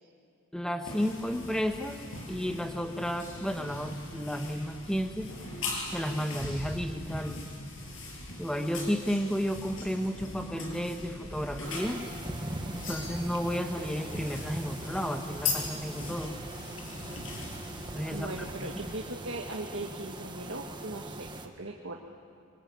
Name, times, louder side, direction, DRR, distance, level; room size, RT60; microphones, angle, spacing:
voice 1, 0.5-2.0 2.3-5.3 5.9-7.4 8.4-12.0 12.9-16.4 17.9-18.9, equal, 5° left, 5 dB, 1.4 m, -32 dB
sound 1, 0.8-19.0, left 3 dB, 70° left, 6.6 m, -40 dB
sound 2, 11.6-21.5, right 1 dB, 20° right, 1.4 m, -42 dB
voice 2, 18.1-22.0, right 2 dB, 65° right, 0 dB, 1.8 m, -39 dB
25.5 x 24.5 x 9.6 m, 2.4 s
head